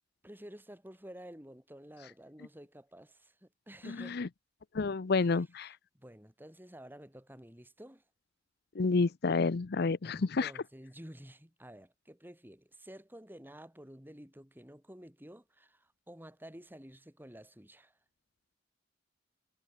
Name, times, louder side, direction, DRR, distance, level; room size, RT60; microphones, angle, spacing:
voice 1, 0.2-4.3 5.2-8.0 10.0-18.0, equal, 10° right, 6.2 m, -51 dB
voice 2, 4.7-5.7 8.8-10.5, left 4 dB, 60° left, 0.6 m, -29 dB
head